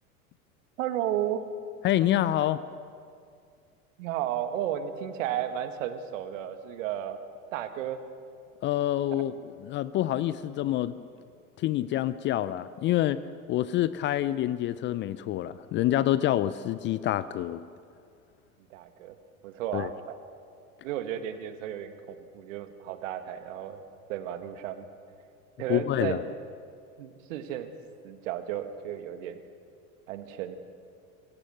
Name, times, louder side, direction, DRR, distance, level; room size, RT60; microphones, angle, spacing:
voice 1, 0.8-1.4 4.0-7.2 7.5-8.0 9.1-9.2 18.7-19.2 19.4-20.2 20.8-23.8 24.1-24.9 25.6-26.3 27.0-27.7 28.0-29.4 30.1-30.6, right 10 dB, 60° right, 9 dB, 1.8 m, -33 dB
voice 2, 1.8-2.6 8.6-9.3 9.6-10.9 11.6-13.2 13.5-17.6 19.7-19.9 25.7-26.2, left 13 dB, 25° left, 16 dB, 0.5 m, -27 dB
26.0 x 16.0 x 6.4 m, 2.3 s
figure-of-eight pair, 80°, 43 cm